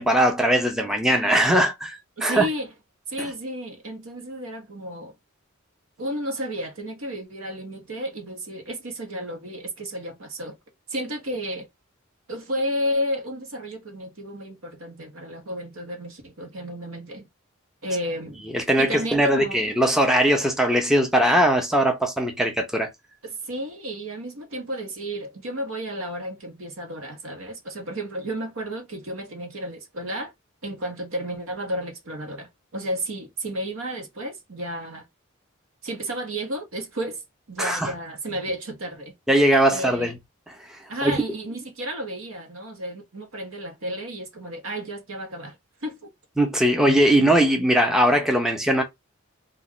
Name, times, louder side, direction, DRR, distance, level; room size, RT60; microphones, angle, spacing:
voice 1, 0.0-2.5 3.2-3.3 18.5-22.9 37.6-37.9 39.3-40.1 41.0-41.2 46.4-48.8, right 1 dB, ahead, 0.5 m, -20 dB
voice 2, 2.2-2.7 3.1-5.1 6.0-10.6 10.9-11.7 12.3-17.3 17.8-18.4 18.8-19.6 23.2-30.3 30.6-35.0 35.8-37.2 37.5-39.1 39.7-40.1 40.9-45.6 45.8-46.1 46.8-47.0, equal, 75° right, 0.9 m, -32 dB
2.4 x 2.3 x 3.5 m
head